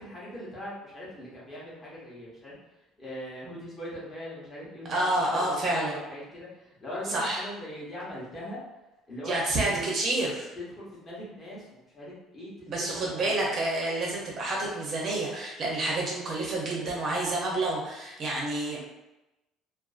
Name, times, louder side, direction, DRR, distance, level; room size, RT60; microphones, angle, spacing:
voice 1, 0.0-2.5 3.0-8.6 9.1-9.4 9.7-9.8 10.6-13.4, left 1 dB, 25° left, -6 dB, 0.8 m, -40 dB
voice 2, 4.9-5.9 7.1-7.4 9.3-10.5 12.7-18.8, right 2 dB, 35° right, -3 dB, 0.5 m, -29 dB
2.4 x 2.3 x 2.4 m, 0.97 s
cardioid pair, 165°, 0 cm